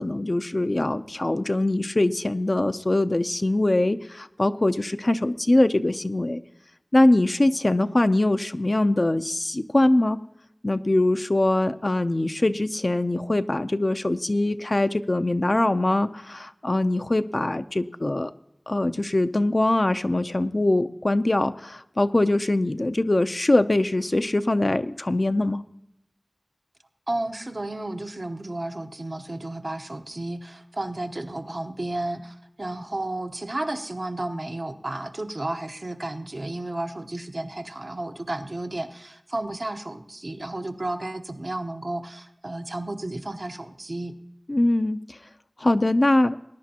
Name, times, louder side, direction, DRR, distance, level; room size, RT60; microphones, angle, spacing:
voice 1, 0.0-6.4 6.9-10.2 10.6-18.3 18.7-25.6 44.5-45.2 45.6-46.4, left 1 dB, 60° left, 9 dB, 0.5 m, -22 dB
voice 2, 27.1-44.2, right 2 dB, 75° right, 5 dB, 0.9 m, -32 dB
20.0 x 10.5 x 2.9 m, 0.80 s
wide cardioid pair, 40°, 0 cm